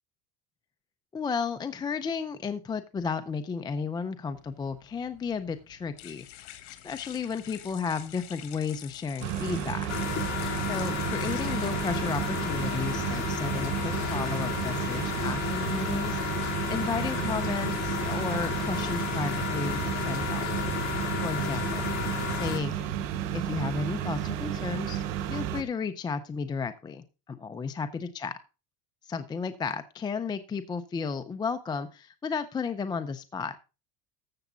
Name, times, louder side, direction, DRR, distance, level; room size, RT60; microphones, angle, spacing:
voice 1, 1.1-9.9 10.7-16.2 16.7-20.5 21.2-21.9 22.4-22.9 23.3-25.0 25.3-28.3 29.0-33.6, left 5 dB, 10° left, 9 dB, 0.4 m, -33 dB
sound 1, 4.4-12.9, left 14 dB, 75° left, 2.2 m, -48 dB
sound 2, 9.2-25.6, right 10 dB, 75° right, 1.7 m, -32 dB
sound 3, 9.9-22.6, left 11 dB, 45° left, 2.7 m, -33 dB
14.0 x 7.1 x 3.8 m, 0.31 s
cardioid pair, 155°, 38 cm